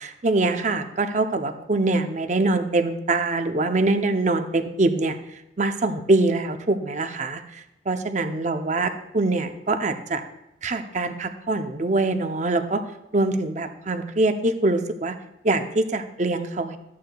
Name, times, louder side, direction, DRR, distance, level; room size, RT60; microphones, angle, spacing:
voice 1, 0.0-10.2 10.6-12.8 13.1-15.2 15.4-16.8, right 2 dB, 45° right, 7 dB, 0.6 m, -24 dB
13.0 x 8.5 x 2.3 m, 0.85 s
head